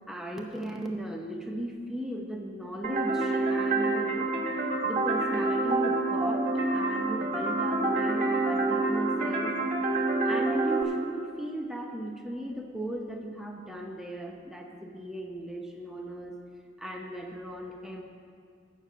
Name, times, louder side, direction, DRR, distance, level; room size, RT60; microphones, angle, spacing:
voice 1, 0.1-4.4 4.8-9.6 10.3-16.4 16.8-18.0, right 1 dB, 5° right, 1 dB, 0.7 m, -37 dB
sound 1, 2.8-10.8, right 2 dB, 45° right, 1.6 m, -27 dB
8.7 x 6.6 x 8.4 m, 2.2 s
head